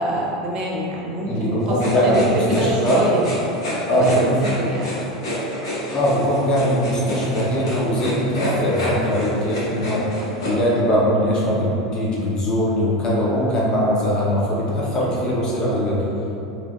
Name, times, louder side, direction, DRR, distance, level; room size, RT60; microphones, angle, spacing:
voice 1, 0.0-3.2 3.9-5.0, equal, 45° right, -3 dB, 0.8 m, -25 dB
voice 2, 1.3-3.0 3.9-4.4 5.9-10.1 10.4-16.0, equal, 35° left, -6 dB, 1.0 m, -21 dB
sound 1, 1.7-10.5, left 1 dB, 85° left, 1.0 m, -27 dB
3.3 x 2.5 x 3.8 m, 2.9 s
hypercardioid pair, 90°, 2 cm